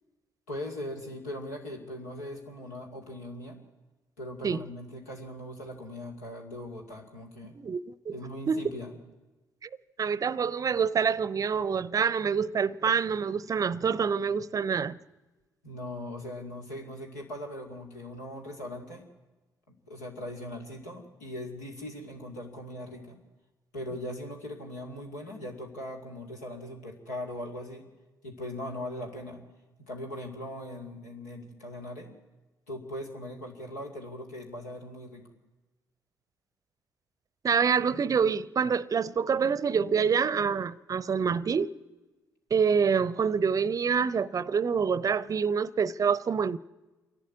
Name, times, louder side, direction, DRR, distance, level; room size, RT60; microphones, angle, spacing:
voice 1, 0.5-3.6 4.2-7.6 8.1-8.9 15.6-19.1 19.7-23.2 23.7-27.8 28.2-29.4 29.8-32.1 32.7-35.2, left 1 dB, 85° left, 2.4 m, -40 dB
voice 2, 7.6-8.1 8.5-8.7 10.0-15.0 37.4-41.7 42.5-46.6, right 6 dB, 40° right, 0.6 m, -26 dB
27.0 x 11.5 x 9.6 m
figure-of-eight pair, 45°, 9 cm